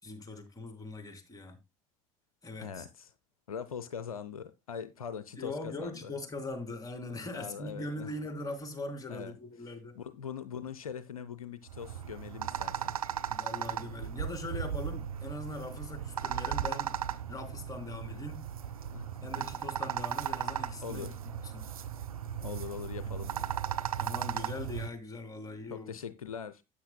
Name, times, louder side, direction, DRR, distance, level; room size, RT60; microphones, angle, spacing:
voice 1, 0.0-1.6 2.4-2.8 5.4-9.9 13.3-16.9 17.3-18.4 19.2-21.1 21.5-21.6 23.0-23.2 24.0-25.9, left 2 dB, 20° left, 3.2 m, -41 dB
voice 2, 2.6-3.1 3.5-6.1 7.3-8.1 9.1-9.3 10.0-13.0 18.1-18.2 18.9-19.1 20.8-21.2 22.4-23.5 25.7-26.6, left 7 dB, 85° left, 0.5 m, -42 dB
sound 1, 11.7-24.9, right 9 dB, 85° right, 0.5 m, -36 dB
13.0 x 8.6 x 2.2 m
figure-of-eight pair, 60°, 18 cm